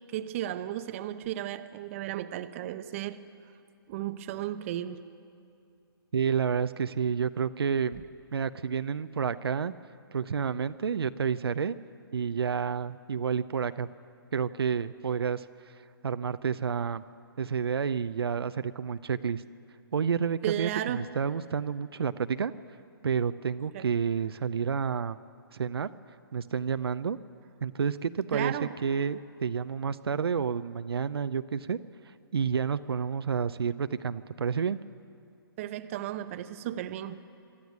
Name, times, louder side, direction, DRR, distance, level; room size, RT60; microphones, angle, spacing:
voice 1, 0.1-3.2 3.9-5.0 20.4-21.1 23.7-24.0 28.3-28.7 35.6-37.2, right 12 dB, 35° right, 11 dB, 0.8 m, -34 dB
voice 2, 6.1-8.0 8.3-9.7 10.1-11.7 12.1-13.9 14.3-15.5 16.0-17.0 17.4-19.4 19.9-22.5 23.0-25.2 25.5-25.9 26.3-27.2 27.6-31.8 32.3-34.8, right 6 dB, 80° right, 12 dB, 0.6 m, -29 dB
24.0 x 13.0 x 9.5 m, 2.5 s
hypercardioid pair, 150°, 13 cm